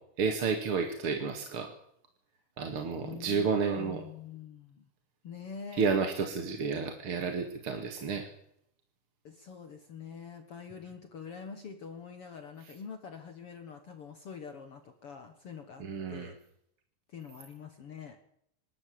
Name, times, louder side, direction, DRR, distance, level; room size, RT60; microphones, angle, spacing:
voice 1, 0.2-1.7 2.6-4.0 5.8-8.3 15.8-16.3, right 5 dB, 50° right, 5 dB, 2.5 m, -31 dB
voice 2, 3.0-3.5 3.8-4.9 5.2-5.9 9.2-16.4 17.1-18.2, left 6 dB, 50° left, 7 dB, 2.2 m, -45 dB
25.0 x 13.0 x 8.6 m, 0.72 s
omnidirectional pair, 3.6 m